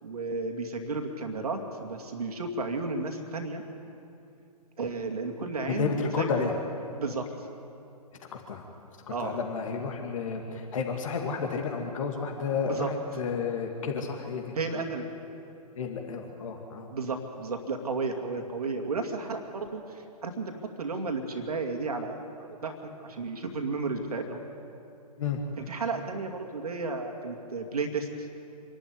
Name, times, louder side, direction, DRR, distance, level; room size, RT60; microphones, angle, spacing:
voice 1, 0.0-3.6 4.8-6.3 7.0-7.2 9.1-9.4 12.7-12.9 14.6-15.1 16.9-24.4 25.7-28.1, right 3 dB, 70° right, 4 dB, 2.4 m, -33 dB
voice 2, 5.7-6.5 8.3-8.6 9.1-14.4 15.8-16.9 25.2-25.4, left 5 dB, 55° left, 3 dB, 2.3 m, -31 dB
26.0 x 12.0 x 9.7 m, 2.7 s
figure-of-eight pair, 130°, 20 cm